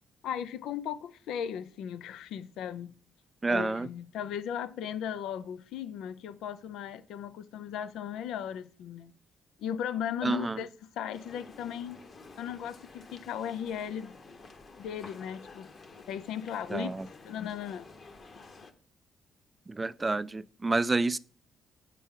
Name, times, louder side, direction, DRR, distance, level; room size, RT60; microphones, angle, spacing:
voice 1, 0.2-2.9 3.5-9.1 9.6-10.7 11.0-12.0 12.4-14.2 14.8-17.9, left 9 dB, 85° left, 0.4 m, -37 dB
voice 2, 3.4-3.9 10.2-10.6 16.7-17.1 19.7-21.2, right 3 dB, 25° right, 0.3 m, -29 dB
sound 1, 11.1-18.7, left 3 dB, 40° left, 0.9 m, -51 dB
8.3 x 4.3 x 3.7 m
cardioid pair, 90°, 0 cm